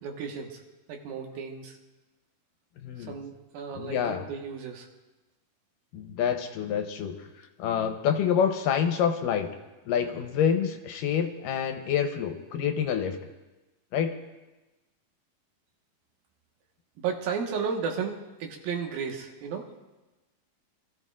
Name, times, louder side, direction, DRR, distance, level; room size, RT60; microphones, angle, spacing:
voice 1, 0.0-0.6 0.9-1.8 3.0-4.9 17.0-19.7, right 6 dB, 80° right, 2 dB, 3.2 m, -34 dB
voice 2, 2.8-3.2 3.7-4.2 5.9-9.5 9.9-13.2 13.9-14.2, left 8 dB, 80° left, 6 dB, 2.3 m, -27 dB
25.5 x 14.0 x 2.5 m, 1.1 s
omnidirectional pair, 4.1 m